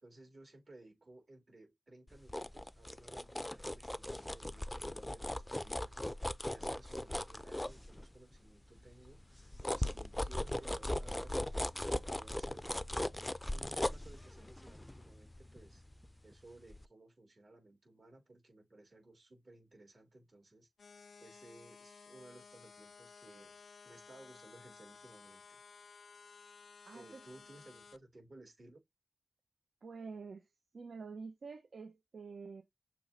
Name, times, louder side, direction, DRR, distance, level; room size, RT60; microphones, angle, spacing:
voice 1, 0.0-12.8 13.5-15.8 16.2-20.7 21.2-23.6 23.8-25.6 26.9-28.8, right 2 dB, 50° right, 3.1 m, -58 dB
sound 1, 2.1-8.4 8.8-16.3 16.7-16.8, left 1 dB, 15° left, 0.4 m, -39 dB
sound 2, 20.8-28.0, left 5 dB, 80° left, 0.4 m, -57 dB
voice 2, 26.9-27.2 29.8-30.4 30.7-32.6, right 4 dB, 80° right, 0.8 m, -47 dB
6.8 x 3.0 x 2.6 m
wide cardioid pair, 80°, 0 cm